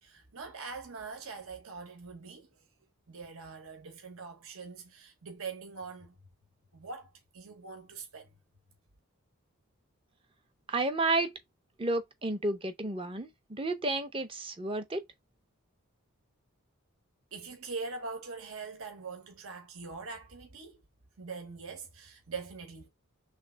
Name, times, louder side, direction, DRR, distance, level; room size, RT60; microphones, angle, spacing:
voice 1, 0.0-2.5 3.1-6.2 6.7-8.3 17.3-20.8 21.2-22.9, right 4 dB, 75° right, 1.1 m, -43 dB
voice 2, 10.7-11.4 11.8-15.0, right 2 dB, 25° right, 0.6 m, -31 dB
3.4 x 3.2 x 4.4 m
head